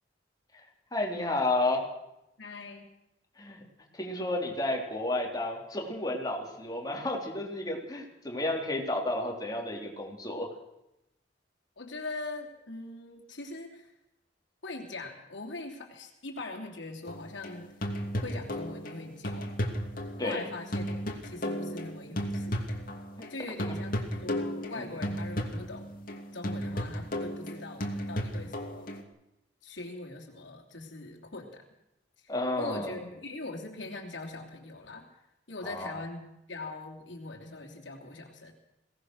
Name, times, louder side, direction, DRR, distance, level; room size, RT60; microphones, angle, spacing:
voice 1, 0.9-1.8 3.4-3.6 3.9-10.5 20.2-20.5 24.7-24.9 32.3-32.9 35.6-36.0, left 2 dB, 20° left, 0 dB, 3.8 m, -31 dB
voice 2, 2.4-2.9 11.8-13.9 14.6-17.7 18.2-19.5 20.2-22.6 23.3-26.0 26.3-28.9 29.6-31.6 32.2-35.1 35.5-38.5, left 2 dB, 85° left, 0 dB, 3.1 m, -41 dB
sound 1, 17.1-23.3 23.6-29.0, equal, 50° left, 2.7 m, -34 dB
22.5 x 18.0 x 6.4 m, 0.88 s
head